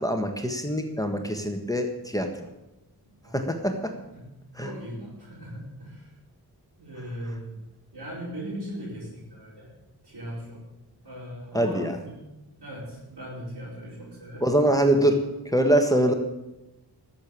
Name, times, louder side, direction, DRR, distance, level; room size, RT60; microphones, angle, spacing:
voice 1, 0.0-2.3 3.3-3.9 4.6-4.7 11.5-12.0 14.4-15.2 15.5-16.1, right 1 dB, 10° left, 4 dB, 1.5 m, -23 dB
voice 2, 3.0-3.4 4.1-4.2 4.5-6.1 6.8-7.6 7.9-9.7 10.0-10.6 11.0-12.2 12.6-14.5, equal, 75° right, -10 dB, 4.7 m, -39 dB
13.0 x 7.0 x 8.7 m, 0.98 s
wide cardioid pair, 60°, 39 cm